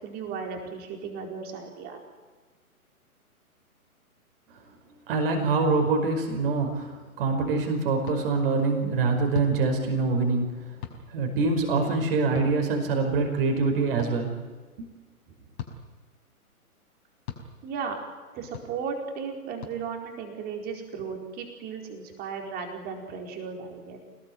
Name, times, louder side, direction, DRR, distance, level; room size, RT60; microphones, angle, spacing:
voice 1, 0.0-2.0 17.6-17.9 18.3-24.0, right 6 dB, 20° right, 2 dB, 4.6 m, -35 dB
voice 2, 5.1-10.7 11.1-14.4 14.8-14.9, right 3 dB, 40° right, 4 dB, 5.2 m, -25 dB
sound 1, 8.0-8.2 9.3-9.5 10.8-11.0 12.3-12.5 14.0-14.1 15.6-15.8 17.3-17.4 18.5-18.7 19.6-19.8, left 9 dB, 35° left, 5.3 m, -36 dB
27.0 x 20.0 x 9.4 m, 1.4 s
figure-of-eight pair, 125°, 45 cm